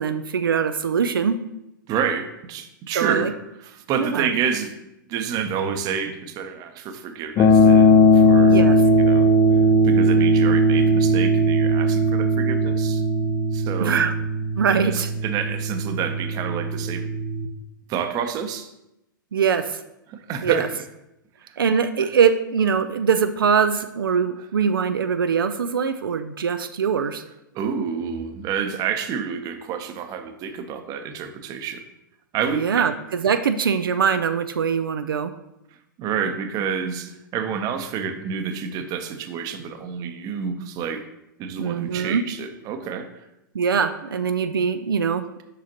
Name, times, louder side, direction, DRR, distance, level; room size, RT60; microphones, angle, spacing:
voice 1, 0.0-1.4 3.0-3.3 4.0-4.3 8.5-8.8 13.8-14.1 14.6-15.1 19.3-19.8 20.4-20.7 21.6-27.2 32.5-32.9 33.2-35.3 41.6-42.2 43.5-45.3, right 6 dB, 85° right, 9 dB, 0.4 m, -22 dB
voice 2, 1.9-3.3 3.6-4.7 5.1-8.7 9.1-13.0 13.5-14.0 14.7-17.1 17.9-18.7 20.1-20.7 21.4-21.6 27.5-31.8 32.3-32.9 36.0-41.0 41.4-43.3, right 7 dB, 35° right, 7 dB, 0.7 m, -29 dB
sound 1, 7.4-17.5, equal, 30° left, 0.6 m, -18 dB
6.6 x 5.0 x 2.9 m, 0.88 s
hypercardioid pair, 110°, 11 cm